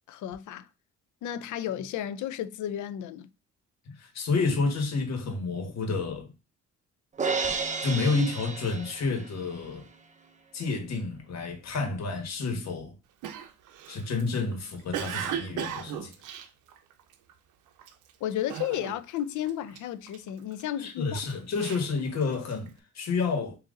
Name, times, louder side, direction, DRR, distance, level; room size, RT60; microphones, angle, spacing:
voice 1, 0.1-0.7 1.2-3.3 18.2-21.2, left 11 dB, 75° left, 0.5 m, -33 dB
voice 2, 3.9-6.3 7.8-9.9 10.5-12.9 13.9-16.1 20.8-23.6, left 4 dB, 60° left, 1.4 m, -30 dB
Crash cymbal, 7.2-9.5, right 4 dB, 25° right, 0.6 m, -31 dB
Cough, 13.2-17.3 17.8-18.1 18.5-19.2 19.5-20.6 21.2-22.7, right 9 dB, 85° right, 0.6 m, -36 dB
3.8 x 2.8 x 3.7 m
cardioid pair, 90°, 30 cm